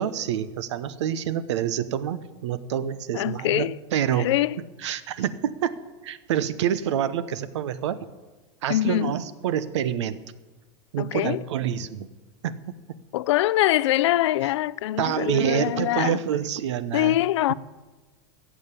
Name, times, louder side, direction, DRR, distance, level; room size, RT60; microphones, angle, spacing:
voice 1, 0.0-4.3 4.8-5.7 6.0-8.0 8.6-10.2 10.9-12.1 12.4-12.6 15.0-17.2, right 9 dB, 85° right, 0.9 m, -27 dB
voice 2, 3.1-3.8 4.2-4.6 8.7-9.1 11.0-11.4 13.1-16.2 16.9-17.5, left 15 dB, 80° left, 0.5 m, -23 dB
14.5 x 7.2 x 8.4 m
supercardioid pair, 130°, 15 cm